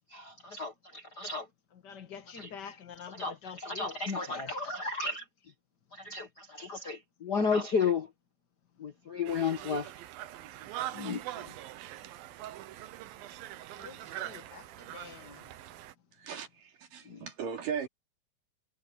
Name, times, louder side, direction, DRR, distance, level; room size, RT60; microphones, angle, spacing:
voice 1, 0.1-1.5 2.4-2.5 3.2-3.3 3.6-5.2 5.9-6.2 6.6-8.1 8.8-9.9 10.9-11.4 17.1-17.2, left 5 dB, 75° left, 0.9 m, -33 dB
voice 2, 1.7-4.9 13.8-15.5, left 7 dB, 40° left, 1.7 m, -47 dB
Conversation, 9.3-15.9, right 13 dB, 80° right, 2.8 m, -43 dB
voice 3, 16.2-17.9, right 7 dB, 65° right, 4.5 m, -37 dB
omnidirectional pair, 4.2 m